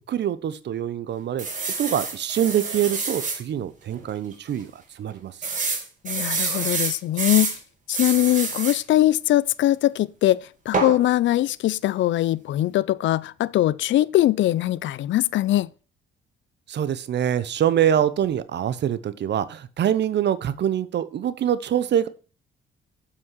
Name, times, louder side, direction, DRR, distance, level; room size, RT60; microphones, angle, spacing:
voice 1, 0.1-1.5 1.8-5.3 16.7-22.1, right 10 dB, 60° right, 0.9 m, -24 dB
sound 1, 1.4-3.4 3.9-4.0 4.3-4.4 5.4-7.6 7.9-8.8 10.7-11.0, right 4 dB, 40° right, 2.7 m, -27 dB
voice 2, 6.0-7.6 7.9-15.7, left 14 dB, 70° left, 0.5 m, -21 dB
7.5 x 5.9 x 6.2 m
cardioid pair, 90°, 20 cm